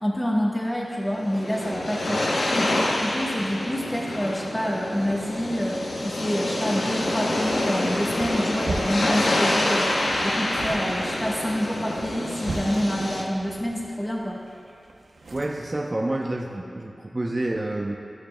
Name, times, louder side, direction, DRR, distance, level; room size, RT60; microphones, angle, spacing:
voice 1, 0.0-2.2 2.5-14.4, equal, 15° left, -3 dB, 1.2 m, -27 dB
sound 1, 1.0-13.2, left 1 dB, 90° left, 0.9 m, -27 dB
sound 2, 7.2-15.7, right 3 dB, 90° right, 0.7 m, -39 dB
voice 2, 15.3-18.0, right 1 dB, 35° right, 0 dB, 0.6 m, -28 dB
16.0 x 6.6 x 2.2 m, 2.6 s
cardioid pair, 45°, 0 cm